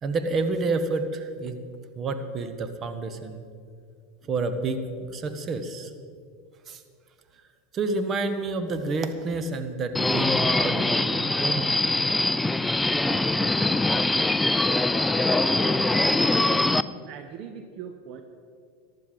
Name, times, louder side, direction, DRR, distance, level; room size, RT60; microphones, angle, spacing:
voice 1, 0.0-1.6 2.0-3.5 4.2-5.9 6.7-6.8 7.7-11.8 14.8-14.9, right 3 dB, 35° right, 8 dB, 1.3 m, -29 dB
Subway metro underground, 9.9-16.8, left 2 dB, 10° left, 0.4 m, -23 dB
voice 2, 17.1-18.2, right 8 dB, 50° right, 7 dB, 1.1 m, -40 dB
15.0 x 11.5 x 5.2 m, 2.2 s
hypercardioid pair, 105°, 0 cm